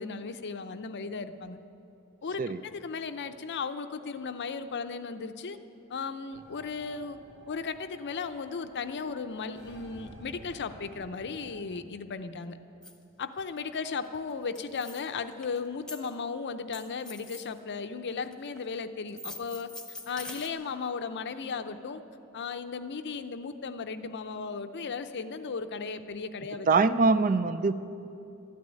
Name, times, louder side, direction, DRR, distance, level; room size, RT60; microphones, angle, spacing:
voice 1, 0.0-1.6 2.2-5.6 5.9-7.2 7.5-12.6 13.2-19.7 20.1-22.0 22.3-26.7, left 5 dB, 50° left, 10 dB, 0.6 m, -36 dB
sound 1, 6.3-11.6, right 1 dB, 80° right, 2.4 m, -52 dB
sound 2, 12.8-12.9 13.6-13.7 13.8-14.2 14.5-15.6 15.9-16.1 16.7-17.5 18.1-18.6 19.1-20.5, left 2 dB, 5° left, 1.1 m, -44 dB
voice 2, 26.7-27.7, right 4 dB, 35° right, 13 dB, 0.4 m, -23 dB
13.0 x 9.5 x 9.8 m, 2.9 s
head